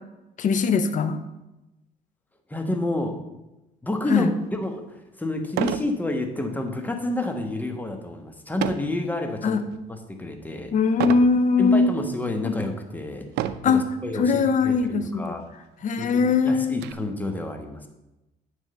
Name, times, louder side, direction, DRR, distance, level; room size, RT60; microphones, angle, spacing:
voice 1, 0.4-1.2 4.1-4.3 9.4-9.6 10.7-11.9 12.4-12.5 13.6-15.4 15.8-16.8, left 4 dB, 50° left, 10 dB, 0.8 m, -21 dB
voice 2, 2.5-3.2 3.8-9.6 9.9-10.7 11.6-13.3 13.6-15.4 16.0-17.8, left 2 dB, 10° left, 5 dB, 1.2 m, -29 dB
sound 1, 4.5-4.6 5.5-5.9 6.4-6.7 8.6-9.0 9.6-10.0 11.0-11.3 12.1-12.2 13.3-13.8 14.8-14.9 15.2-15.3 15.8-16.9, right 11 dB, 80° right, 0.5 m, -29 dB
9.5 x 3.7 x 6.8 m, 0.98 s
cardioid pair, 110°, 17 cm